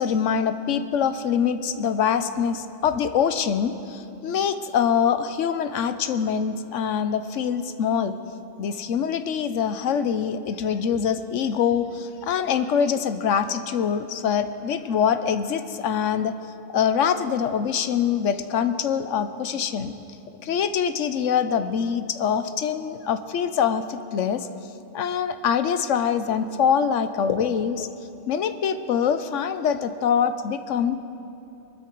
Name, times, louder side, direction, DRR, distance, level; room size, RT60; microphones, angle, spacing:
voice 1, 0.0-8.2 8.6-16.3 16.7-19.9 20.4-24.5 24.9-27.9 28.3-31.0, left 7 dB, 80° left, 11 dB, 1.1 m, -24 dB
23.0 x 13.0 x 4.6 m, 2.9 s
omnidirectional pair, 1.3 m